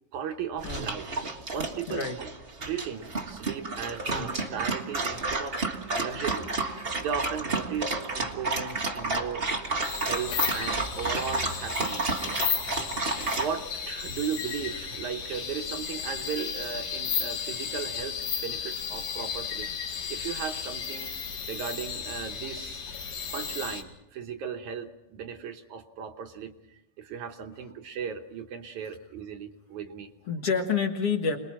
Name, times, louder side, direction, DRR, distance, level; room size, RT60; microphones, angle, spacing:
voice 1, 0.1-1.2 1.5-2.3 2.6-5.7 5.9-9.5 10.0-12.4 13.4-21.1 21.5-22.8 23.3-30.1, right 7 dB, 70° right, 5 dB, 2.3 m, -36 dB
Dog, 0.6-13.5, right 3 dB, 30° right, 1.0 m, -31 dB
sound 1, 9.8-23.8, left 6 dB, 80° left, 3.9 m, -34 dB
voice 2, 30.3-31.4, left 5 dB, 55° left, 3 dB, 2.1 m, -28 dB
27.0 x 20.5 x 6.1 m, 0.93 s
omnidirectional pair, 3.9 m